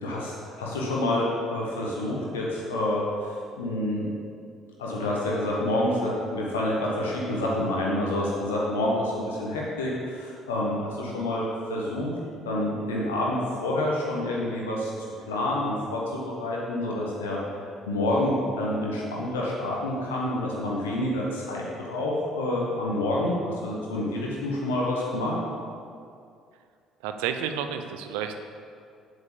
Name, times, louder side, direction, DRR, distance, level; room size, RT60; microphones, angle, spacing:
voice 1, 0.0-4.1 4.8-12.1 12.4-14.9 15.3-25.4, left 1 dB, 75° left, -4 dB, 1.3 m, -28 dB
voice 2, 27.0-28.4, right 8 dB, 70° right, 7 dB, 0.6 m, -30 dB
7.9 x 5.3 x 7.0 m, 2.3 s
figure-of-eight pair, 50°, 0 cm